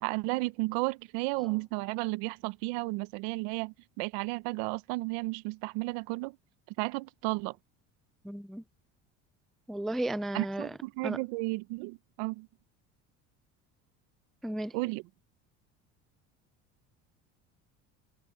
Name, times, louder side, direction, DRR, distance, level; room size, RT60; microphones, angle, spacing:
voice 1, 0.0-6.4 6.8-7.6 10.3-12.5 14.7-15.0, right 24 dB, 80° right, 1.0 m, -33 dB
voice 2, 8.2-8.6 9.7-10.7 11.0-11.2 14.4-14.8, right 1 dB, ahead, 0.3 m, -34 dB
supercardioid pair, 110°, 36 cm